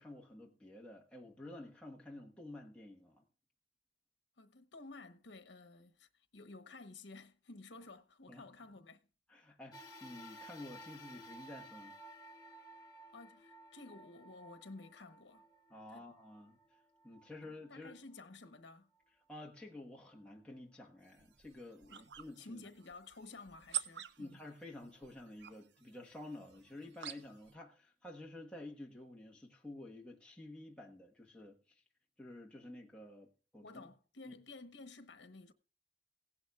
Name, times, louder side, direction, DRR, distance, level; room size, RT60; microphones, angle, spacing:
voice 1, 0.0-3.2 8.3-8.4 9.3-11.9 15.7-16.6 17.0-17.9 19.3-22.6 24.2-31.8 32.2-33.9 34.2-34.3, left 1 dB, 5° left, 1.2 m, -51 dB
voice 2, 4.4-9.0 13.1-15.5 15.9-16.1 17.4-18.9 21.9-22.1 22.4-24.4 33.6-35.5, left 3 dB, 80° left, 1.0 m, -53 dB
sound 1, 9.7-18.3 18.9-19.0 20.1-20.2, equal, 20° left, 1.6 m, -56 dB
sound 2, 21.0-27.5, right 11 dB, 75° right, 0.6 m, -48 dB
16.5 x 11.0 x 2.4 m
head